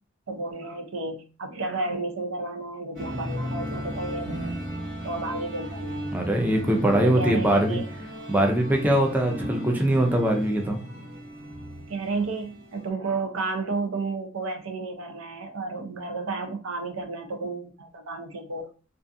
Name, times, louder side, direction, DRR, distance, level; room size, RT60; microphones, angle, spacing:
voice 1, 0.3-4.6 5.0-6.1 6.9-7.9 11.9-18.7, right 3 dB, 85° right, 4 dB, 0.5 m, -32 dB
sound 1, 2.9-12.9, equal, 60° right, 1.1 m, -35 dB
voice 2, 6.1-7.8 8.3-10.8, right 1 dB, 10° right, 2 dB, 0.4 m, -22 dB
2.4 x 2.3 x 2.5 m, 0.36 s
head